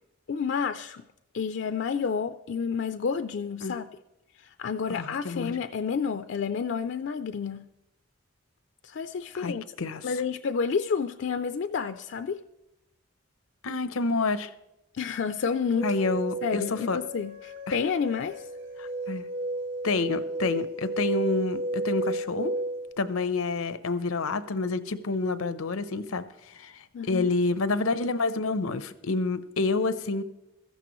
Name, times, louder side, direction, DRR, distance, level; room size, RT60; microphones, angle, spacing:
voice 1, 0.3-1.0 1.3-3.9 4.4-7.6 8.8-9.6 10.0-12.4 14.9-15.9 16.4-18.4 26.9-27.3, left 6 dB, 60° left, 10 dB, 0.4 m, -30 dB
voice 2, 4.9-5.6 9.3-10.1 13.6-14.5 15.8-17.0 17.7-17.8 18.8-19.3 19.8-22.5 23.0-30.2, left 3 dB, 90° left, 13 dB, 0.7 m, -28 dB
sound 1, 15.7-22.9, right 2 dB, 65° right, 4.0 m, -33 dB
15.5 x 13.5 x 3.1 m, 0.90 s
head